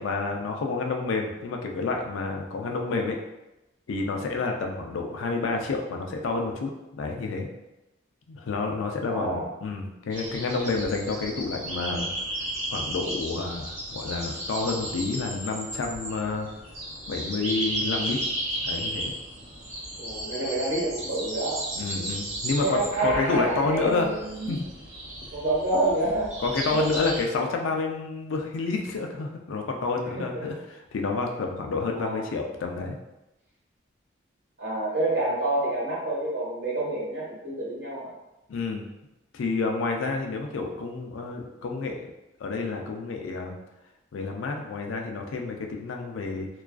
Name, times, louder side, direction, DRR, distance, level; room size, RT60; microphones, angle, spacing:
voice 1, 0.0-3.2 3.9-7.5 8.3-12.1 12.7-16.5 17.1-18.2 18.6-19.1 21.8-24.1 24.5-24.7 26.4-33.0 38.5-38.9 39.3-42.1 42.4-43.6 44.1-46.5, left 3 dB, 90° left, 2 dB, 0.4 m, -29 dB
voice 2, 9.1-9.5 20.0-21.6 22.6-24.5 25.3-26.3 26.7-26.9 30.1-30.5 31.9-32.3 34.6-38.1, right 2 dB, 65° right, -7 dB, 1.0 m, -28 dB
sound 1, 10.1-27.2, right 1 dB, 35° right, 0.8 m, -34 dB
2.3 x 2.3 x 2.3 m, 0.95 s
head